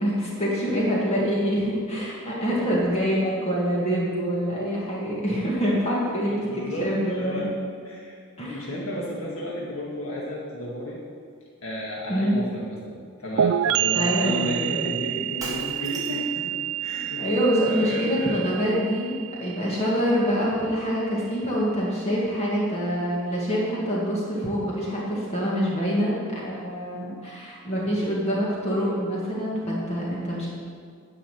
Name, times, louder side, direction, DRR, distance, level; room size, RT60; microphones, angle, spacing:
voice 1, 0.0-6.5 6.8-7.5 8.4-8.6 12.1-12.4 13.9-14.8 17.1-30.5, equal, 30° left, -5 dB, 2.2 m, -25 dB
voice 2, 6.3-7.5 7.8-11.0 11.6-17.3 17.6-18.5, equal, 85° left, -5 dB, 1.9 m, -33 dB
sound 1, 13.4-20.9, right 10 dB, 85° right, 0.3 m, -29 dB
Shatter, 15.4-16.4, right 1 dB, 15° right, 1.7 m, -38 dB
10.5 x 5.7 x 7.9 m, 2.1 s
head